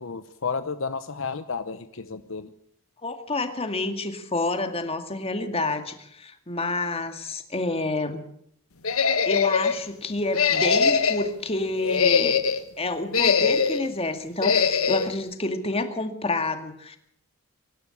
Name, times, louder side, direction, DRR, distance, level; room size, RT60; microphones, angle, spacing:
voice 1, 0.0-2.5, left 5 dB, 65° left, 12 dB, 0.9 m, -32 dB
voice 2, 3.0-8.2 9.3-12.4 12.8-17.0, left 2 dB, 30° left, 8 dB, 2.2 m, -29 dB
sound 1, 8.8-9.8 10.3-11.3 11.8-12.6 13.1-13.9 14.4-15.1, left 5 dB, 85° left, 1.4 m, -22 dB
24.0 x 12.0 x 9.8 m, 0.70 s
head